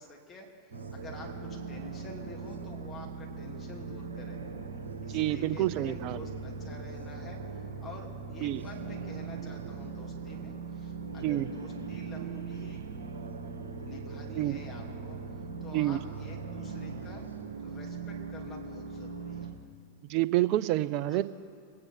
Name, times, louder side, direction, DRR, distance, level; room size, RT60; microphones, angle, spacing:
voice 1, 0.0-4.4 5.0-7.4 7.8-12.8 13.8-17.2 17.6-19.5 21.1-21.2, left 1 dB, 20° left, -1 dB, 2.8 m, -49 dB
sound 1, 0.7-19.5, right 4 dB, 70° right, 1.6 m, -40 dB
voice 2, 5.1-6.2 8.4-8.6 11.2-11.5 14.4-14.5 15.7-16.0 20.1-21.2, right 15 dB, 40° right, 15 dB, 0.5 m, -28 dB
24.0 x 9.7 x 4.5 m, 2.2 s
figure-of-eight pair, 90°, 0 cm